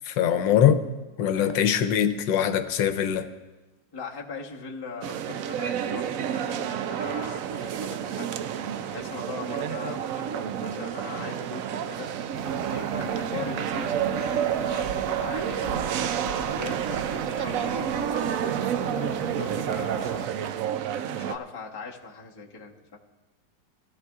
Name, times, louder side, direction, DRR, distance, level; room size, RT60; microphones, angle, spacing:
voice 1, 0.1-0.8 1.2-3.3, left 9 dB, 80° left, 9 dB, 1.4 m, -22 dB
voice 2, 1.2-1.6 3.9-12.1 12.7-15.8 16.2-20.6 21.1-23.0, left 5 dB, 20° left, -1 dB, 0.7 m, -40 dB
sound 1, 5.0-21.4, right 9 dB, 80° right, 0.7 m, -30 dB
sound 2, 12.3-20.3, right 5 dB, 55° right, 0.9 m, -37 dB
21.0 x 13.0 x 2.4 m, 1.1 s
omnidirectional pair, 2.0 m